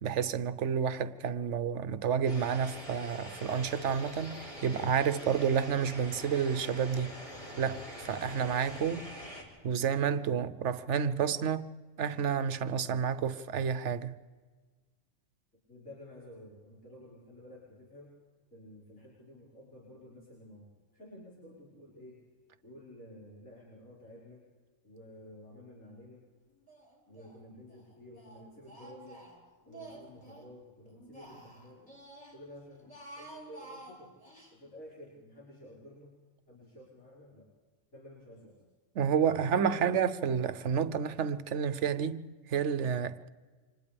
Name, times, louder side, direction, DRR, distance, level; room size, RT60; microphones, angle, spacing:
voice 1, 0.0-7.1 7.6-9.1 9.6-11.7 12.0-14.1 39.0-43.3, right 7 dB, 65° right, 1.1 m, -30 dB
sound 1, 2.3-9.4, equal, 45° left, 4.3 m, -44 dB
voice 2, 15.7-18.2 18.5-22.2 22.6-24.4 24.8-26.2 27.1-29.2 29.7-31.8 32.3-32.9 33.2-34.1 34.5-36.1 36.5-37.5 37.9-38.6 39.3-39.9, left 1 dB, 90° left, 5.5 m, -51 dB
Speech, 26.7-27.4 27.7-30.5 30.9-32.4 32.8-34.5, right 2 dB, 5° left, 4.1 m, -51 dB
29.5 x 25.5 x 3.4 m
omnidirectional pair, 1.3 m